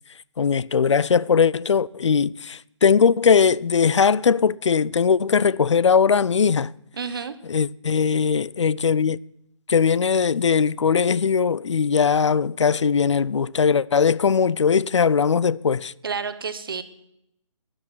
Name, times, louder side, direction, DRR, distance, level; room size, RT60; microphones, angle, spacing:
voice 1, 0.4-6.7 7.5-9.2 9.7-15.9, left 6 dB, 65° left, 0.4 m, -20 dB
voice 2, 7.0-7.4 16.0-16.8, right 5 dB, 45° right, 1.0 m, -30 dB
13.0 x 9.6 x 6.1 m
hypercardioid pair, 170°, 16 cm